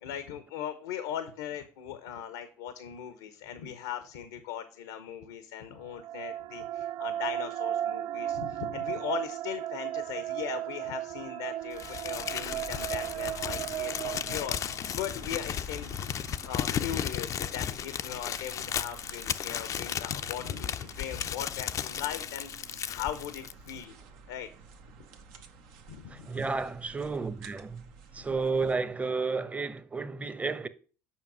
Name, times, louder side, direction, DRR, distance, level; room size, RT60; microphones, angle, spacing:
voice 1, 0.0-16.1 16.4-24.0 24.3-24.5 25.9-26.4, left 9 dB, 85° left, 0.8 m, -39 dB
sound 1, 5.8-15.0, right 12 dB, 55° right, 0.3 m, -35 dB
Crumpling crinkling, 11.8-23.8, left 9 dB, 45° left, 0.5 m, -35 dB
sound 2, 12.2-28.8, right 5 dB, 75° right, 1.0 m, -51 dB
voice 2, 26.1-27.9 28.1-30.7, right 4 dB, 20° right, 0.9 m, -32 dB
7.3 x 5.2 x 6.1 m
hypercardioid pair, 75°, 7 cm